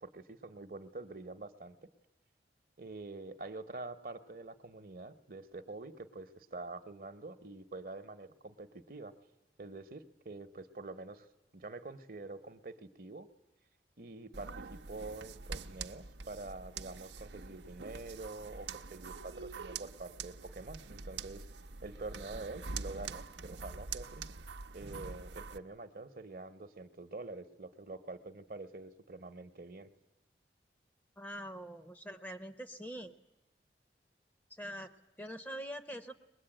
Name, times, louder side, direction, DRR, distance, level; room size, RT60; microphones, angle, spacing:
voice 1, 0.0-1.8 2.8-9.1 9.6-11.3 11.5-13.3 14.0-21.5 21.8-24.2 24.7-29.9, right 3 dB, 55° right, 9 dB, 1.0 m, -46 dB
sound 1, 14.3-25.6, right 4 dB, 90° right, 0.8 m, -45 dB
voice 2, 31.2-33.1 34.5-36.2, equal, 10° left, 8 dB, 0.7 m, -44 dB
22.5 x 21.0 x 9.0 m, 1.0 s
head